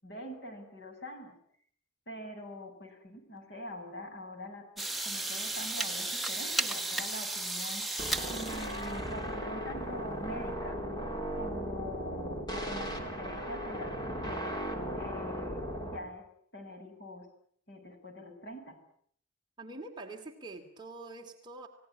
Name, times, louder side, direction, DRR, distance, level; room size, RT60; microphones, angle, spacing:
voice 1, 0.0-1.4 2.1-7.8 8.3-10.8 11.3-14.6 14.9-16.3 16.5-17.3 17.7-18.8, left 1 dB, 50° left, 4 dB, 8.0 m, -44 dB
sound 1, 4.8-9.1, right 2 dB, ahead, 1.3 m, -34 dB
sound 2, 8.0-16.0, equal, 20° left, 3.6 m, -37 dB
voice 2, 19.6-21.7, right 2 dB, 20° right, 2 dB, 2.6 m, -45 dB
30.0 x 17.5 x 9.9 m, 0.64 s
head